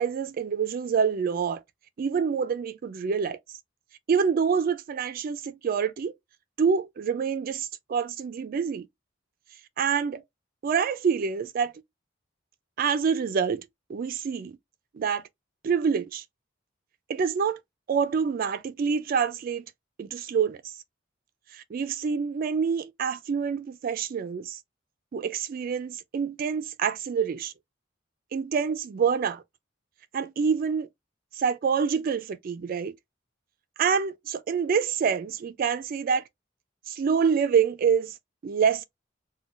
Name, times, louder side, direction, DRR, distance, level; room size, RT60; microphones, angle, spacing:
voice 1, 0.0-1.6 2.0-3.4 4.1-6.1 6.6-8.9 9.8-10.2 10.6-11.7 12.8-14.6 14.9-15.2 15.6-16.2 17.1-17.6 17.9-19.6 20.0-20.6 21.5-24.6 25.1-27.5 28.3-29.4 30.1-30.9 31.4-32.9 33.8-36.2 36.9-38.1 38.4-38.8, right 6 dB, 50° right, 0.3 m, -26 dB
2.4 x 2.2 x 3.8 m
head